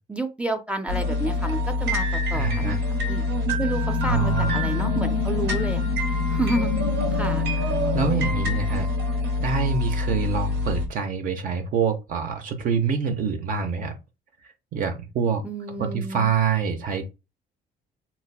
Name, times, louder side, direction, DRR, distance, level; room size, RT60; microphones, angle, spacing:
voice 1, 0.1-2.8 3.1-3.3 3.6-5.8 6.3-6.7 7.1-7.5 15.4-16.3, right 2 dB, 5° right, 0.4 m, -30 dB
sound 1, 0.9-10.9, left 2 dB, 80° right, 0.9 m, -25 dB
voice 2, 2.3-2.8 4.0-4.5 7.6-7.7 7.9-8.9 9.4-13.9 14.7-15.4 15.8-17.0, right 6 dB, 55° right, 0.6 m, -26 dB
sound 2, 2.8-9.3, left 12 dB, 85° left, 0.4 m, -31 dB
3.9 x 2.1 x 2.2 m
cardioid pair, 110°, 17 cm